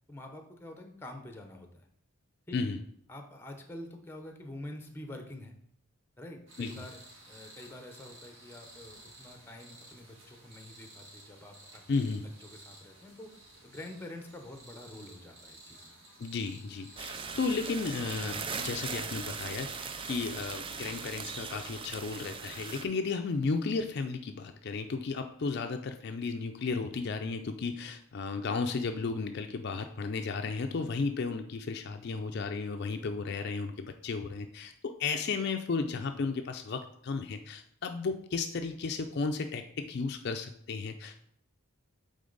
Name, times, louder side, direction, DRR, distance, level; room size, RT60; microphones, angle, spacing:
voice 1, 0.1-1.9 2.5-2.6 3.1-5.5 6.2-7.0 7.3-13.3 13.6-16.0, left 1 dB, 10° left, 5 dB, 0.7 m, -47 dB
sound 1, 6.5-21.4, right 1 dB, 60° right, 2.0 m, -54 dB
voice 2, 11.9-12.2 16.2-41.2, left 4 dB, 50° left, 6 dB, 0.4 m, -34 dB
sound 2, 17.0-22.8, right 5 dB, 25° right, 0.3 m, -39 dB
8.4 x 3.8 x 3.9 m, 0.69 s
head